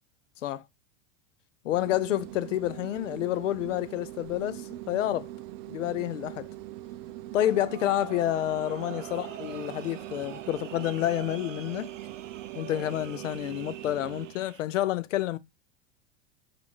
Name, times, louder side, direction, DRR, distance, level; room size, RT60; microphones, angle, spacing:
voice 1, 1.6-5.3 5.7-6.5 7.3-11.9 12.6-15.4, left 13 dB, 90° left, 0.5 m, -29 dB
sound 1, 1.7-14.4, right 16 dB, 40° right, 0.4 m, -42 dB
sound 2, 7.4-14.6, right 11 dB, 90° right, 0.6 m, -45 dB
5.1 x 2.6 x 2.9 m
hypercardioid pair, 105°, 37 cm